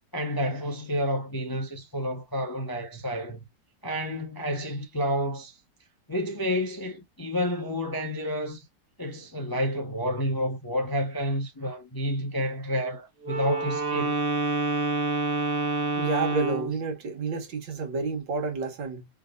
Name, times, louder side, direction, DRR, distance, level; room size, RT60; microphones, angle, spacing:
voice 1, 0.1-3.5 3.8-5.6 6.1-8.7 9.0-14.2, equal, 25° left, 0.5 m, -30 dB
Wind instrument woodwind instrument, 13.2-16.8, right 3 dB, 45° right, 0.8 m, -27 dB
voice 2, 16.0-19.1, right 4 dB, 90° right, 2.1 m, -29 dB
4.7 x 3.5 x 2.4 m
omnidirectional pair, 2.0 m